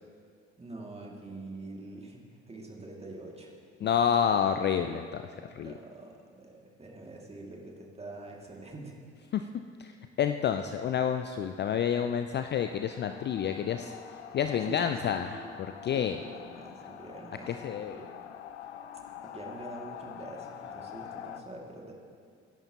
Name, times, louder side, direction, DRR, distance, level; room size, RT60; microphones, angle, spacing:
voice 1, 0.6-2.2 2.5-3.5 3.8-3.9 5.6-9.0 14.7-15.6 15.9-16.3 16.6-18.2 19.3-21.9, right 2 dB, 20° right, -1 dB, 2.3 m, -45 dB
voice 2, 3.8-5.2 5.5-5.7 9.3-9.5 9.8-13.9 14.3-15.4 15.8-16.2 17.5-18.0, left 8 dB, 30° left, 8 dB, 0.5 m, -29 dB
sound 1, 12.3-21.4, left 9 dB, 75° left, 0.6 m, -45 dB
21.5 x 10.5 x 3.0 m, 2.2 s
figure-of-eight pair, 50°, 34 cm